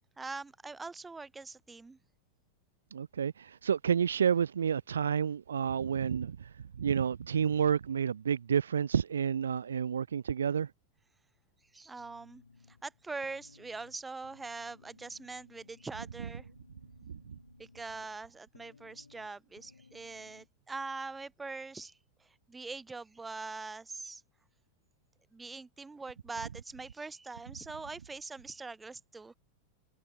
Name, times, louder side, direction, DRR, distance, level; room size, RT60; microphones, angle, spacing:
voice 1, 0.2-2.0 11.7-12.4 12.7-16.5 17.6-24.2 25.3-29.3, right 3 dB, 10° right, 4.1 m, -43 dB
voice 2, 2.9-6.5 6.8-10.7, right 7 dB, 70° right, 0.4 m, -30 dB
sound 1, 12.0-20.5, left 4 dB, 75° left, 2.3 m, -60 dB
figure-of-eight pair, 90°, 0 cm